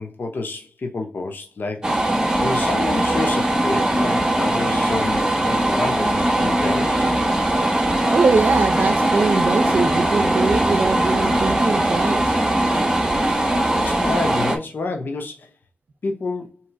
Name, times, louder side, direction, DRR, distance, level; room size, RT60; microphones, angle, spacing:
voice 1, 0.0-7.2 13.7-15.5 16.0-16.5, left 3 dB, 70° left, 0.8 m, -29 dB
sound 1, 1.8-14.6, right 1 dB, 20° right, 1.2 m, -20 dB
voice 2, 8.1-12.3, right 4 dB, 75° right, 0.7 m, -22 dB
3.8 x 3.0 x 4.5 m
wide cardioid pair, 65°, 3 cm